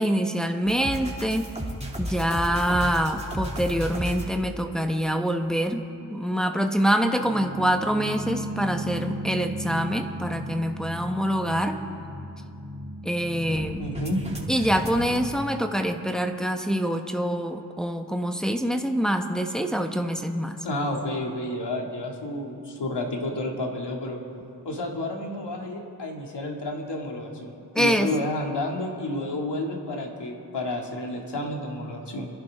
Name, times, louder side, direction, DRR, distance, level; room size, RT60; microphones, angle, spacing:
voice 1, 0.0-1.5 2.0-5.8 6.1-11.8 13.0-13.9 14.5-20.6 27.7-28.1, equal, ahead, 4 dB, 1.3 m, -25 dB
sound 1, 0.6-4.3 7.2-15.2, equal, 15° right, 2.8 m, -34 dB
voice 2, 13.8-14.2 20.6-24.2 24.6-32.3, left 1 dB, 65° left, 0 dB, 2.7 m, -30 dB
27.0 x 11.0 x 3.8 m, 2.6 s
cardioid pair, 50°, 44 cm